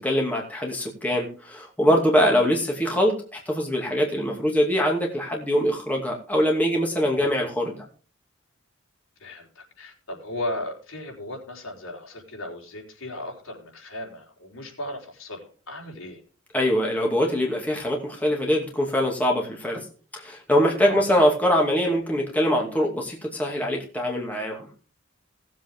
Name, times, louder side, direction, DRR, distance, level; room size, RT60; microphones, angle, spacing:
voice 1, 0.0-7.8 16.5-19.8 20.2-24.7, equal, 10° left, -1 dB, 2.5 m, -23 dB
voice 2, 9.2-16.2 20.8-21.0, left 1 dB, 75° left, -1 dB, 4.4 m, -36 dB
18.5 x 7.8 x 3.7 m, 0.38 s
head